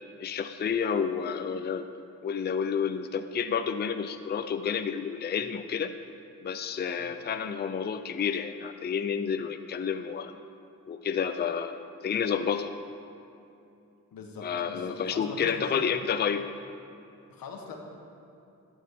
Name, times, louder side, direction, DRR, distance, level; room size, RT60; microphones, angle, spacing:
voice 1, 0.2-1.8 2.2-5.9 6.4-10.4 10.9-12.7 14.4-16.5, left 7 dB, 30° left, 9 dB, 0.4 m, -30 dB
voice 2, 14.1-15.9 17.3-17.8, left 4 dB, 85° left, 2 dB, 1.3 m, -43 dB
11.0 x 7.3 x 4.6 m, 2.7 s
cardioid pair, 70°, 34 cm